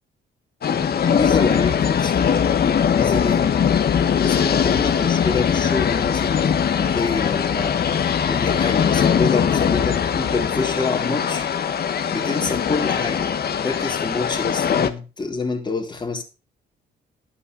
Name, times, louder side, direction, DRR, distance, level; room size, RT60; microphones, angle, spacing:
sound 1, 0.6-14.9, left 7 dB, 50° left, 1.1 m, -21 dB
voice 1, 0.6-2.4 2.9-3.5 4.2-7.8 8.2-11.5 12.1-16.2, left 4 dB, 20° left, 2.8 m, -27 dB
11.0 x 8.8 x 5.0 m
cardioid pair, 90°, 20 cm